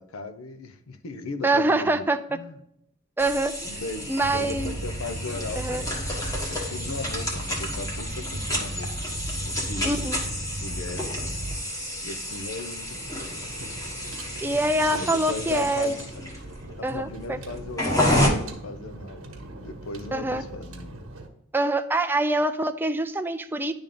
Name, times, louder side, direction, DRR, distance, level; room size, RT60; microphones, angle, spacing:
voice 1, 0.0-2.6 3.6-5.9 6.5-10.1 10.6-11.4 12.0-13.0 14.8-16.0 16.8-21.0, left 3 dB, 70° left, 9 dB, 0.7 m, -37 dB
voice 2, 1.4-2.2 3.2-3.8 4.1-4.7 5.6-5.8 9.8-10.2 14.4-15.9 16.8-17.4 20.1-20.4 21.5-23.7, right 2 dB, 10° right, 7 dB, 0.4 m, -25 dB
sound 1, 3.2-18.3, left 1 dB, 15° left, 1.3 m, -30 dB
sound 2, 4.2-11.6, right 1 dB, 45° right, 0.7 m, -35 dB
sound 3, 12.9-21.3, right 2 dB, 80° right, 1.1 m, -42 dB
10.5 x 3.5 x 3.8 m, 0.75 s
head